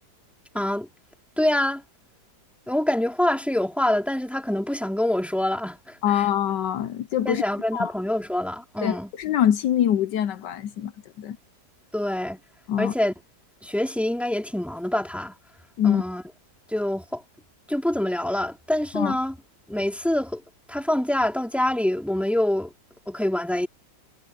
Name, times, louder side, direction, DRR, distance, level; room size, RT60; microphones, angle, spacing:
voice 1, 0.5-0.9 1.4-1.8 2.7-6.3 7.2-9.1 11.9-12.4 12.8-13.1 13.6-15.4 15.8-16.2 16.7-17.2 17.7-19.4 19.7-20.4 20.7-22.7 23.1-23.7, left 1 dB, ahead, 2.4 m, -25 dB
voice 2, 6.0-7.4 7.7-7.9 8.8-10.9 11.2-11.4 12.7-12.9 15.8-16.0 18.9-19.1, left 10 dB, 75° left, 1.3 m, -24 dB
omnidirectional pair, 2.0 m